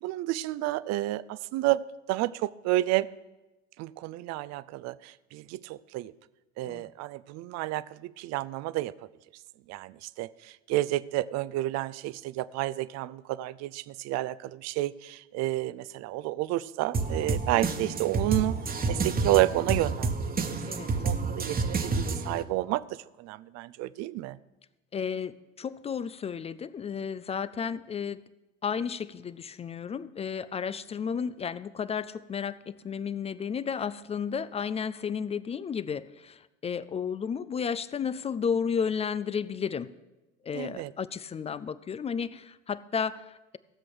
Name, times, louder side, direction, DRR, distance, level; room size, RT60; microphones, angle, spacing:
voice 1, 0.0-1.8 2.1-3.1 3.8-6.1 6.6-8.9 9.7-18.6 18.9-20.2 20.5-22.8 23.2-24.4 40.5-40.9, right 16 dB, 45° right, 18 dB, 0.6 m, -30 dB
sound 1, 16.9-22.4, right 4 dB, 25° right, 1.3 m, -29 dB
voice 2, 24.9-28.2 28.6-39.9 40.4-43.6, left 6 dB, 15° left, 17 dB, 0.4 m, -33 dB
16.5 x 7.6 x 6.3 m, 1.0 s
figure-of-eight pair, 65°, 39 cm